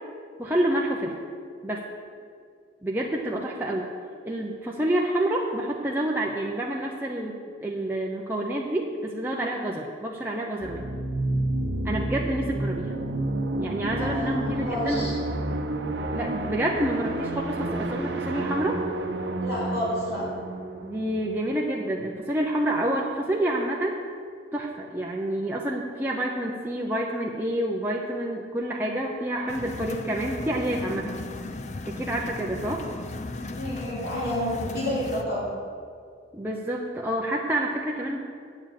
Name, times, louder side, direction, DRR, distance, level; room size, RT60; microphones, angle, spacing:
voice 1, 0.4-1.1 1.6-1.8 2.8-3.9 4.2-7.4 7.6-10.8 11.8-12.9 13.6-15.1 16.1-18.8 20.8-23.9 24.5-31.1 31.9-32.8 36.3-38.2, right 1 dB, 10° right, -3 dB, 0.6 m, -28 dB
sound 1, 10.6-22.1, right 2 dB, 65° right, 0.8 m, -30 dB
voice 2, 14.0-15.1 19.4-20.2 33.5-35.5, equal, 55° left, -7 dB, 3.0 m, -30 dB
sound 2, 29.5-35.2, left 2 dB, 35° left, 0.5 m, -36 dB
8.6 x 7.1 x 7.6 m, 2.2 s
head